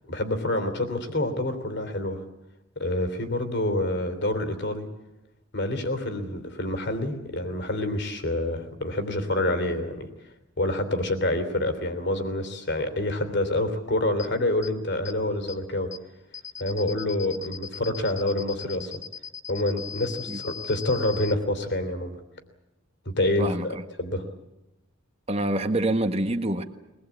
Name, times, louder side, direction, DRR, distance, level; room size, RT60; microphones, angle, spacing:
voice 1, 0.1-2.2 2.7-4.9 5.5-10.1 10.6-15.9 16.6-18.9 19.5-22.2 23.2-24.2, left 1 dB, 55° left, 3.2 m, -27 dB
sound 1, 14.2-14.3 14.6-14.7 15.1-15.2 15.5-15.6 15.9-16.0 16.3-21.3, left 7 dB, 15° left, 1.0 m, -38 dB
voice 2, 23.4-23.8 25.3-26.6, right 1 dB, 30° right, 1.4 m, -26 dB
24.0 x 20.0 x 8.5 m
head